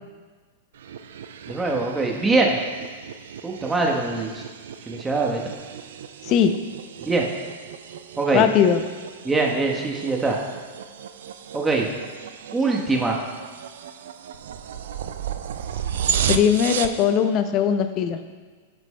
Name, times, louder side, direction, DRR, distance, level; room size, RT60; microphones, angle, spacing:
sound 1, 0.7-17.0, right 8 dB, 70° right, 0.4 m, -34 dB
voice 1, 1.5-2.6 3.4-4.3 4.9-5.4 7.0-7.3 8.2-8.4 9.2-10.4 11.5-11.9 12.5-13.2, right 3 dB, 10° right, -1 dB, 1.1 m, -22 dB
voice 2, 6.2-6.5 8.3-8.8 16.3-18.2, left 8 dB, 40° left, 9 dB, 0.5 m, -19 dB
10.5 x 6.1 x 2.2 m, 1.5 s
hypercardioid pair, 105°, 0 cm